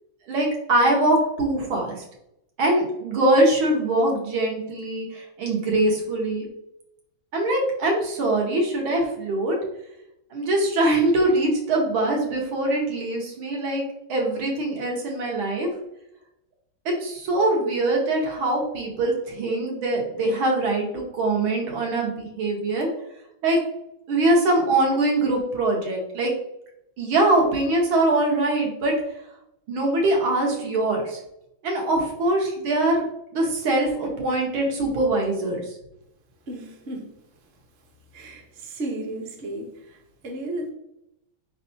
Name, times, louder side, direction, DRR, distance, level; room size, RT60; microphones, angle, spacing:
voice 1, 0.3-2.0 2.6-6.5 7.3-9.6 10.3-13.8 14.1-15.7 16.9-22.9 23.4-23.6 24.1-26.3 27.0-28.9 29.7-31.2 31.6-33.0 33.3-35.6, right 2 dB, 85° right, 0 dB, 1.9 m, -23 dB
voice 2, 36.5-37.1 38.1-40.7, right 1 dB, 50° right, 2 dB, 0.7 m, -34 dB
4.4 x 4.0 x 2.7 m, 0.82 s
omnidirectional pair, 2.2 m